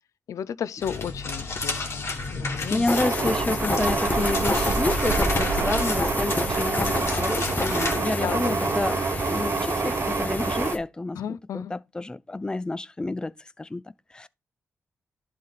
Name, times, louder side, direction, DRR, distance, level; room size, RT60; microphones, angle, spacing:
voice 1, 0.3-3.3 3.6-3.9 4.2-4.4 8.2-8.8 11.1-11.7, left 9 dB, 90° left, 0.4 m, -35 dB
sound 1, 0.8-8.0, left 3 dB, 55° left, 2.5 m, -33 dB
voice 2, 2.7-13.8 14.1-14.3, left 2 dB, 15° left, 0.4 m, -29 dB
sound 2, 2.9-10.8, left 2 dB, 30° left, 1.2 m, -30 dB
sound 3, 2.9-10.7, right 4 dB, 50° right, 0.9 m, -27 dB
11.5 x 4.1 x 4.1 m
cardioid pair, 85°, 5 cm